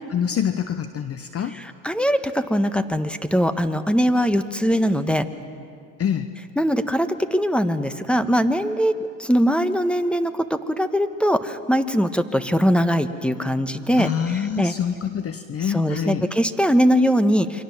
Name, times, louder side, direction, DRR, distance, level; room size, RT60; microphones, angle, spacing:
voice 1, 0.1-1.5 6.0-6.3 14.0-16.3, left 8 dB, 35° left, 10 dB, 1.2 m, -26 dB
voice 2, 1.5-5.3 6.6-8.9 9.2-14.7 15.6-17.6, equal, ahead, 11 dB, 1.3 m, -21 dB
28.5 x 24.0 x 7.4 m, 2.3 s
hypercardioid pair, 85°, 43 cm